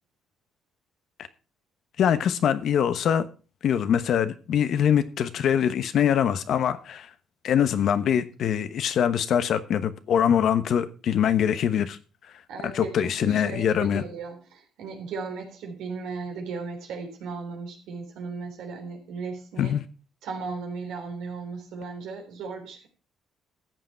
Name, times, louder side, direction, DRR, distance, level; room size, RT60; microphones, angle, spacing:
voice 1, 2.0-3.3 3.6-7.1 7.4-12.0 12.6-14.0 19.6-19.8, left 9 dB, 65° left, 1.1 m, -23 dB
voice 2, 12.5-19.7 20.2-22.9, right 4 dB, 80° right, 3.4 m, -36 dB
13.5 x 7.7 x 4.6 m
supercardioid pair, 70°, 0 cm